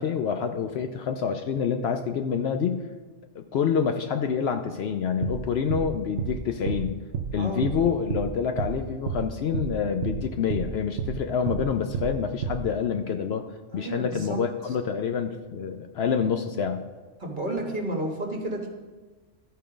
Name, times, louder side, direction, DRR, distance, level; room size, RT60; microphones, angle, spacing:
voice 1, 0.0-2.9 3.4-7.0 7.3-13.4 13.7-16.8, left 6 dB, 65° left, 6 dB, 0.8 m, -27 dB
sound 1, 5.2-5.4 5.7-5.9 6.2-6.3 6.7-6.8 7.1-7.3 7.6-7.8 8.1-8.3 8.6-8.7 9.1-9.2 9.5-9.7 10.0-10.2 10.5-10.7 11.0-11.1 11.5-11.6 11.9-12.1 12.4-12.6, right 7 dB, 65° right, 0.9 m, -29 dB
voice 2, 7.3-7.7 13.7-14.4 17.2-18.7, right 1 dB, 40° right, 1 dB, 1.4 m, -31 dB
13.5 x 4.6 x 5.0 m, 1.3 s
omnidirectional pair, 1.3 m